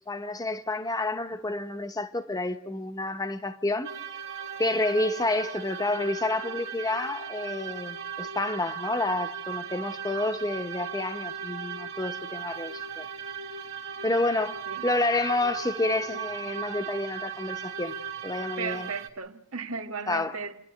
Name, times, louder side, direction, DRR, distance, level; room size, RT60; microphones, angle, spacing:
voice 1, 0.1-3.9 4.6-13.1 14.0-14.6 14.8-18.0 18.2-18.9 20.1-20.4, left 2 dB, 20° left, 1.0 m, -29 dB
sound 1, 3.8-19.1, right 7 dB, 70° right, 2.1 m, -37 dB
voice 2, 18.6-20.6, right 5 dB, 90° right, 1.5 m, -35 dB
29.0 x 11.0 x 9.2 m
head